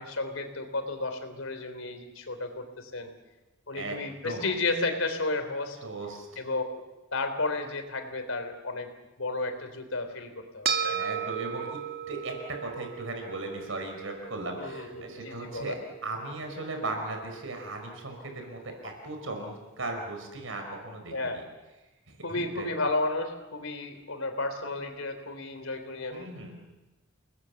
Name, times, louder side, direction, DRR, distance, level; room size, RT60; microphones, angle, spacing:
voice 1, 0.0-3.1 3.7-5.8 6.4-6.6 7.1-8.9 9.2-11.1 14.6-15.8 21.1-21.4 22.2-26.3, left 2 dB, 85° left, 7 dB, 3.5 m, -32 dB
voice 2, 5.8-6.4 10.8-11.8 12.1-21.4 22.1-22.7 26.1-26.6, right 2 dB, 80° right, 4 dB, 5.1 m, -37 dB
sound 1, 10.6-19.2, right 8 dB, 45° right, 2.1 m, -37 dB
29.5 x 19.5 x 7.2 m, 1.1 s
head